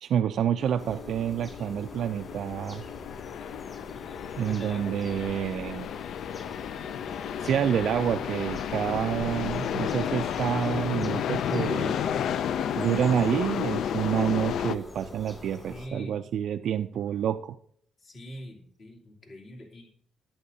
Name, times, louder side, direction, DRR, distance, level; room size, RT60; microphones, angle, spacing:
voice 1, 0.0-2.8 4.4-5.9 7.4-12.0 12.8-17.6, right 9 dB, 70° right, 7 dB, 0.3 m, -28 dB
sound 1, 0.6-14.8, left 9 dB, 70° left, 0.3 m, -32 dB
sound 2, 0.8-15.9, left 2 dB, 25° left, 2.3 m, -45 dB
voice 2, 4.5-4.9 15.7-16.2 18.0-20.0, equal, 55° left, 0 dB, 2.6 m, -43 dB
11.0 x 8.7 x 2.7 m, 0.63 s
cardioid pair, 90°, 0 cm